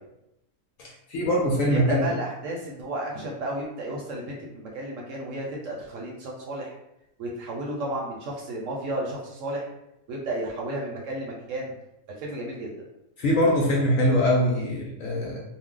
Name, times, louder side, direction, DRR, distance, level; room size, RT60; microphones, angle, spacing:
voice 1, 0.8-2.1 13.2-15.4, equal, 70° left, -2 dB, 0.9 m, -23 dB
voice 2, 1.7-6.7 7.2-9.7 10.1-11.7 12.2-12.7, right 1 dB, 65° right, -2 dB, 0.9 m, -32 dB
2.6 x 2.0 x 3.6 m, 0.84 s
omnidirectional pair, 1.6 m